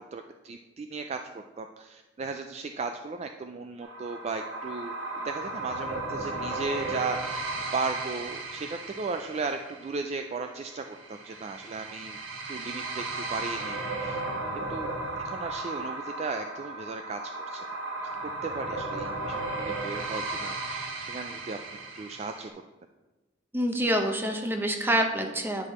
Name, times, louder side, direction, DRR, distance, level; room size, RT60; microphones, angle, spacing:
voice 1, 0.1-12.2 12.5-14.2 14.7-14.9 15.2-17.6 18.2-21.6 21.9-22.5, right 4 dB, 35° right, 5 dB, 0.3 m, -36 dB
sound 1, 3.8-22.5, right 2 dB, 75° right, 1.2 m, -35 dB
voice 2, 23.5-25.7, right 1 dB, 10° right, 4 dB, 0.7 m, -26 dB
9.8 x 5.0 x 4.2 m, 1.2 s
head